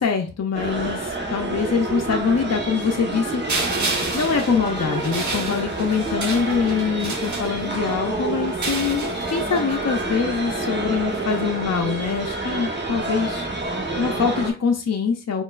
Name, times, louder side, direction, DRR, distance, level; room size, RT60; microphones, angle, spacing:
voice 1, 0.0-3.4 4.1-13.5 14.0-15.4, left 6 dB, 55° left, 3 dB, 0.6 m, -24 dB
sound 1, 0.5-14.5, right 2 dB, 35° right, 1.1 m, -28 dB
sound 2, 2.1-3.0 6.0-7.1 10.1-11.1, right 3 dB, 10° right, 0.5 m, -39 dB
sound 3, 3.5-7.9 8.5-9.8, right 3 dB, 65° right, 1.1 m, -30 dB
4.4 x 3.8 x 2.4 m, 0.34 s
wide cardioid pair, 60°, 31 cm